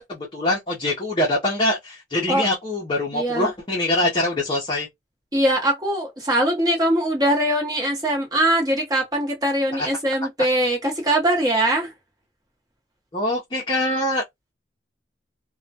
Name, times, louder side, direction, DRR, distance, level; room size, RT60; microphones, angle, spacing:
voice 1, 0.1-4.9 9.8-9.9 13.1-14.2, left 1 dB, 25° left, 0.6 m, -23 dB
voice 2, 3.1-3.5 5.3-11.9, right 1 dB, 20° right, 0.9 m, -21 dB
2.2 x 2.1 x 2.7 m
head